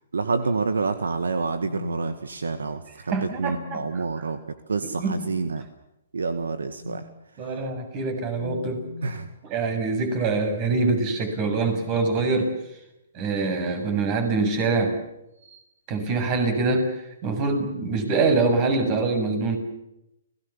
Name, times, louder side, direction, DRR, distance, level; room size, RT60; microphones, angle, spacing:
voice 1, 0.1-4.4 4.7-5.7 6.1-7.1 7.4-7.5 9.0-9.3, right 4 dB, 80° right, 10 dB, 1.8 m, -28 dB
sound 1, 1.3-2.6 3.2-4.0 4.8-5.3 6.7-7.1 8.2-9.3 10.8-12.6 13.7-14.1 15.4-15.6, left 6 dB, 60° right, 7.7 m, -42 dB
voice 2, 3.1-3.8 5.0-5.1 7.4-8.8 9.4-12.5 13.1-14.9 15.9-19.6, right 3 dB, 35° right, 7 dB, 7.1 m, -24 dB
29.5 x 19.0 x 7.3 m, 0.88 s
hypercardioid pair, 135°, 0 cm